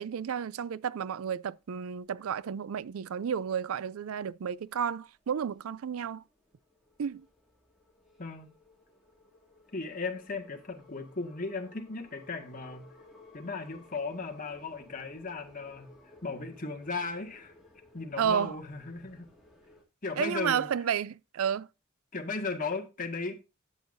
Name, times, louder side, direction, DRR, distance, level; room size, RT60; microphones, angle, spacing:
voice 1, 0.0-6.2 7.0-7.2 18.2-18.6 20.2-21.7, right 8 dB, 85° right, 0.4 m, -31 dB
sound 1, 1.7-2.4 2.8-2.9 3.3-3.7 4.3-4.6 5.1-19.8, left 2 dB, ahead, 2.5 m, -58 dB
voice 2, 9.7-12.9 13.3-17.5 17.9-19.3 20.0-20.7 22.1-23.3, left 3 dB, 40° left, 1.8 m, -36 dB
12.5 x 8.2 x 2.6 m
head